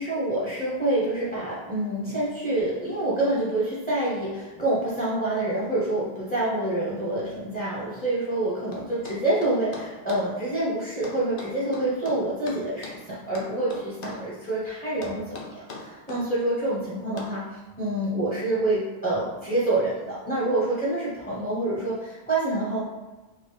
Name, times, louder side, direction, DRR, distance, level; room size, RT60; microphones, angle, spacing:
voice 1, 0.0-22.8, right 2 dB, 10° left, -8 dB, 0.7 m, -27 dB
sound 1, 8.7-10.3 11.0-13.0 13.3-14.3 15.0-16.3 17.2-17.4, left 3 dB, 60° left, 0.8 m, -40 dB
4.6 x 2.2 x 3.1 m, 1.2 s
omnidirectional pair, 1.0 m